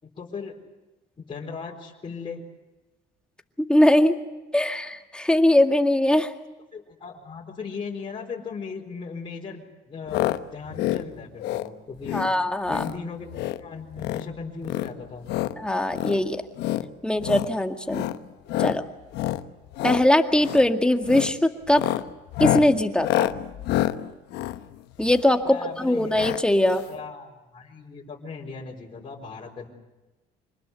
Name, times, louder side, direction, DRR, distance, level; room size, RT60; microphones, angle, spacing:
voice 1, 0.0-0.6 1.2-2.4 6.7-12.3 12.7-15.3 25.4-26.3 26.7-29.7, left 5 dB, 30° left, -2 dB, 4.4 m, -38 dB
voice 2, 3.7-4.1 4.5-6.3 12.1-12.8 15.6-16.4 17.0-18.1 18.6-18.8 19.8-21.8 22.4-23.3 25.0-26.8, left 1 dB, 5° left, 5 dB, 2.0 m, -21 dB
sound 1, 10.1-10.4 10.7-11.0 11.4-11.7 12.0-12.3 12.7-13.0 13.3-13.6 13.9-14.3 14.6-15.5 15.9-16.2 16.6-16.8 17.2-17.5 17.9-18.2 18.5-18.8 19.1-19.4 19.7-20.0 20.4-20.7 21.0-21.3 21.7-25.4 26.1-26.4 26.7-26.8 27.0-27.1, left 14 dB, 85° left, 1.1 m, -27 dB
26.5 x 20.0 x 8.1 m, 1.1 s
cardioid pair, 110°, 17 cm